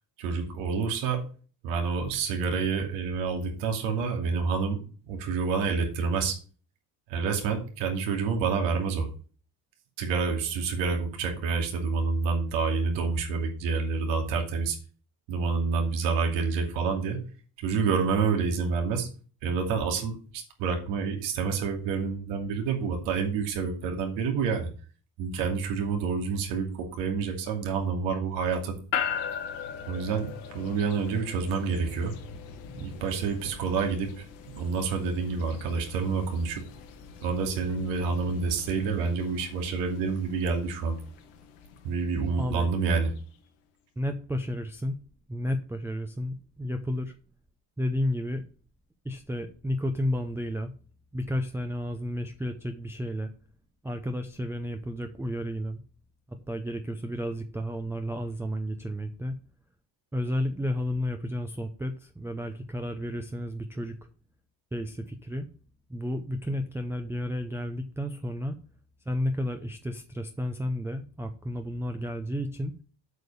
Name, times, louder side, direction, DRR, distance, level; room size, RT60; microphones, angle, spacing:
voice 1, 0.2-1.2 1.6-4.8 5.1-6.4 7.1-9.1 10.0-14.8 15.3-17.2 17.6-19.1 19.4-24.7 25.2-28.8 29.9-32.1 32.8-34.2 34.6-36.6 37.2-41.0 41.8-43.1, right 5 dB, 90° right, 3 dB, 2.7 m, -28 dB
sound 1, 28.9-43.2, left 8 dB, 85° left, 1.9 m, -40 dB
voice 2, 42.4-42.7 44.0-45.0 45.3-47.1 47.8-48.5 49.0-50.7 51.1-53.3 53.8-55.8 56.3-59.4 60.1-64.0 64.7-65.5 65.9-68.6 69.1-72.7, left 1 dB, 5° right, 6 dB, 0.5 m, -32 dB
8.0 x 5.2 x 6.9 m, 0.39 s
cardioid pair, 130°, 43 cm